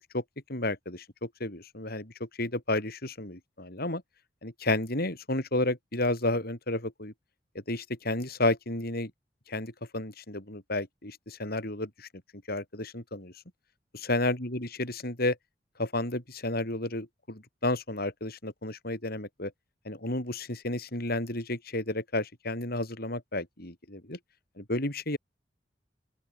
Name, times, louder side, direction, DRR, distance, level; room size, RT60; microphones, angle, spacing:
voice 1, 0.5-4.0 4.4-7.1 7.7-9.1 9.5-12.1 12.5-13.3 13.9-15.3 15.8-19.5 19.8-24.2 24.6-25.2, left 2 dB, 60° left, 7.9 m, -32 dB
open air
head